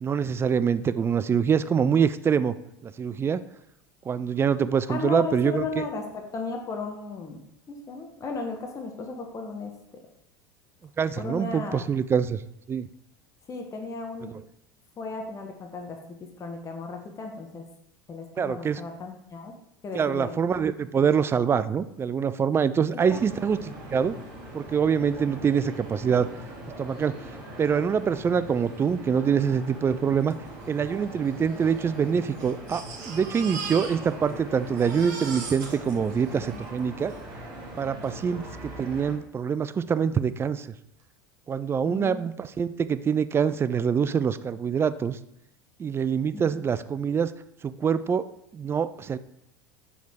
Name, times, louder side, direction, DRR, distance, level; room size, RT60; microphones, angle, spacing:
voice 1, 0.0-2.5 2.8-3.4 4.1-5.8 11.0-12.4 12.7-12.9 14.3-14.4 18.4-18.8 19.9-24.2 24.5-26.3 26.8-30.3 30.7-37.1 37.8-40.7 41.5-45.2 45.8-47.3 47.6-48.3 48.5-49.2, right 7 dB, 25° right, 15 dB, 0.3 m, -25 dB
voice 2, 4.9-9.7 11.2-11.8 13.5-14.4 15.0-17.7 18.1-19.5 19.8-20.4 20.6-21.0 23.1-23.2 36.3-36.6 41.8-42.2 46.3-46.4, left 3 dB, 30° left, 3 dB, 1.0 m, -35 dB
sound 1, 23.0-39.2, right 1 dB, 40° right, 2.4 m, -41 dB
Crying sobbing, 30.3-30.4 30.6-30.7 31.5-34.4 34.6-37.2 38.0-38.1 38.5-38.6, right 4 dB, 65° right, 1.3 m, -40 dB
5.9 x 4.7 x 3.6 m, 0.81 s
hypercardioid pair, 80°, 11 cm